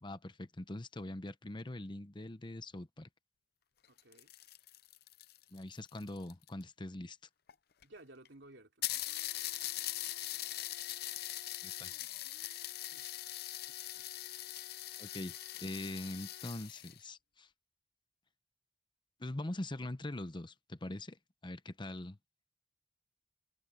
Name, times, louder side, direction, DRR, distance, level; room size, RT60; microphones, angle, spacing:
voice 1, 0.0-3.1 5.5-7.2 11.6-11.9 15.0-17.5 19.2-21.2 21.4-22.2, left 1 dB, 25° left, 0.9 m, -43 dB
sound 1, 3.8-6.6 7.5-7.6 7.8-7.9 8.3-8.4 8.8-17.0, left 14 dB, 60° left, 0.7 m, -41 dB
voice 2, 3.9-4.3 7.8-8.9 12.9-13.1 13.9-14.1, right 1 dB, 80° right, 3.3 m, -56 dB
head